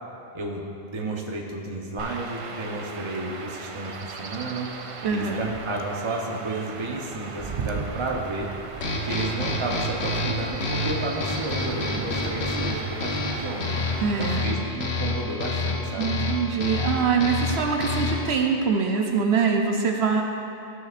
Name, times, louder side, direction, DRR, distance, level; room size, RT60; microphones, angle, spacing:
voice 1, 0.3-8.5 9.0-13.7 14.2-16.1, right 2 dB, 30° right, -1 dB, 0.8 m, -32 dB
Chirp tweet / Wind / Stream, 2.0-14.4, right 5 dB, 55° right, 0.3 m, -38 dB
voice 2, 5.0-5.4 14.0-14.5 16.0-20.2, right 5 dB, 75° right, 2 dB, 0.9 m, -24 dB
sound 1, 8.8-18.4, left 2 dB, 70° left, 1.2 m, -28 dB
14.0 x 6.2 x 2.5 m, 2.7 s
omnidirectional pair, 1.1 m